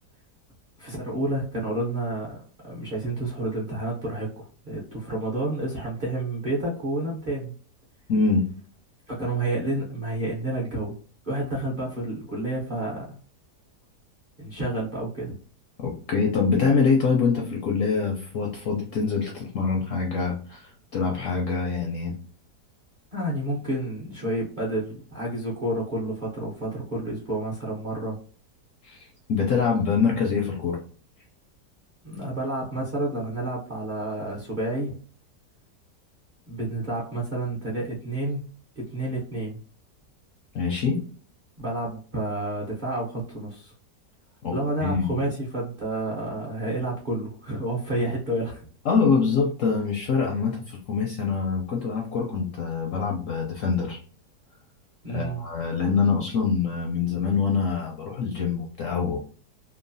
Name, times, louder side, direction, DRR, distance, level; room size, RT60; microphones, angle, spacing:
voice 1, 0.8-7.5 9.1-11.0 11.2-13.2 14.4-15.3 23.1-28.2 32.0-34.9 36.5-38.4 38.8-39.6 41.6-43.7 44.5-48.7 55.0-55.4, right 1 dB, 45° right, -4 dB, 0.7 m, -30 dB
voice 2, 8.1-8.5 15.8-22.1 28.8-30.8 40.5-41.0 44.4-44.5 44.8-45.1 48.9-54.0 55.1-59.2, left 5 dB, 70° left, 0 dB, 0.8 m, -25 dB
3.0 x 2.1 x 2.6 m, 0.42 s
omnidirectional pair, 1.8 m